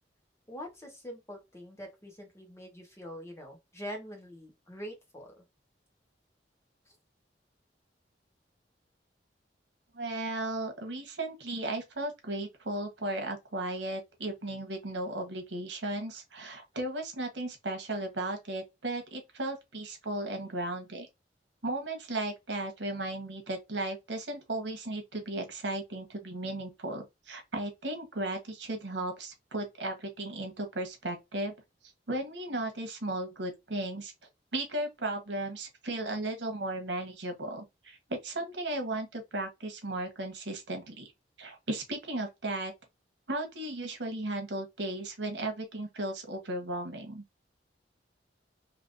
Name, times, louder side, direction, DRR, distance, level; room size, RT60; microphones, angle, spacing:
voice 1, 0.5-5.4, equal, 15° left, 1.3 m, -44 dB
voice 2, 9.9-21.1 21.6-31.5 32.1-34.1 34.5-41.1 41.4-42.7 43.3-47.2, right 2 dB, 80° right, 1.2 m, -35 dB
3.4 x 2.9 x 2.6 m
head